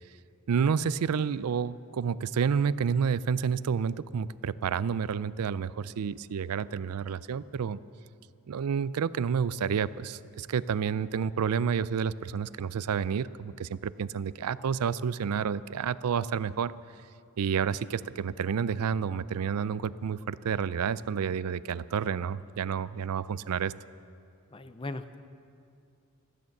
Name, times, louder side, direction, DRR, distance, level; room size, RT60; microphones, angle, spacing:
voice 1, 0.5-7.8 8.5-16.7 17.4-23.7, right 7 dB, 85° right, 17 dB, 0.4 m, -30 dB
voice 2, 24.5-25.2, left 2 dB, 25° left, 11 dB, 0.5 m, -39 dB
15.5 x 13.0 x 7.2 m, 2.4 s
head